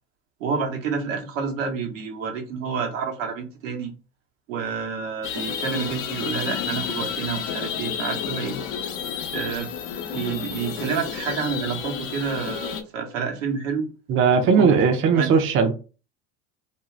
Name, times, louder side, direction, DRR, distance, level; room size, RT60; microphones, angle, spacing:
voice 1, 0.4-3.9 4.5-8.6 9.3-9.7 10.1-13.9 14.4-15.3, right 6 dB, 80° right, 0.9 m, -29 dB
sound 1, 5.2-12.8, left 8 dB, 55° left, 0.7 m, -31 dB
voice 2, 14.1-15.7, right 5 dB, 35° right, 0.5 m, -18 dB
2.6 x 2.3 x 3.1 m
hypercardioid pair, 85°, 38 cm